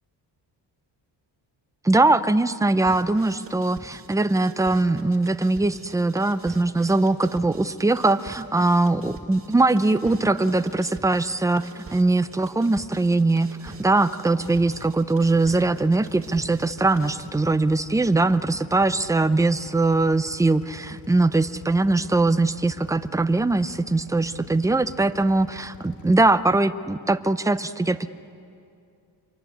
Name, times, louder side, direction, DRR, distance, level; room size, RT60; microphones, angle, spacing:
voice 1, 1.8-28.1, right 2 dB, 10° right, 12 dB, 0.5 m, -21 dB
sound 1, 2.9-17.3, right 3 dB, 30° right, 2.5 m, -45 dB
Drill, 14.4-26.3, left 4 dB, 80° left, 2.2 m, -45 dB
27.0 x 23.5 x 8.4 m, 2.5 s
cardioid pair, 145°, 44 cm